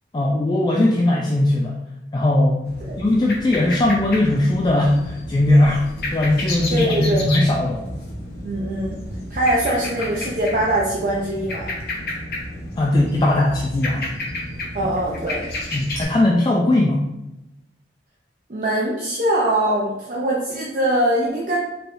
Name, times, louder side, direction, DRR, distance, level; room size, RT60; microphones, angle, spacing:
voice 1, 0.1-1.8 2.1-2.6 3.0-7.8 12.8-14.1 15.7-17.1, left 1 dB, 25° left, -1 dB, 0.3 m, -19 dB
sound 1, 2.6-16.0, left 1 dB, 55° left, 0.9 m, -31 dB
voice 2, 6.7-7.3 8.4-9.0 9.3-11.7 14.7-15.4 18.5-21.6, right 1 dB, 45° right, -4 dB, 0.6 m, -22 dB
4.5 x 3.2 x 2.6 m, 0.92 s
head